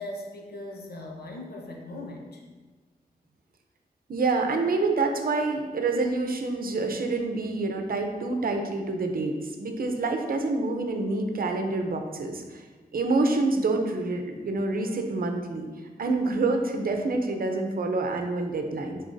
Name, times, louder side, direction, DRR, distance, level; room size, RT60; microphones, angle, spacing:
voice 1, 0.0-2.4, left 1 dB, 80° left, 0 dB, 1.1 m, -39 dB
voice 2, 4.1-12.6 12.9-15.7 16.0-19.0, right 3 dB, 65° right, 4 dB, 0.8 m, -27 dB
10.0 x 4.0 x 2.7 m, 1.4 s
wide cardioid pair, 140°, 16 cm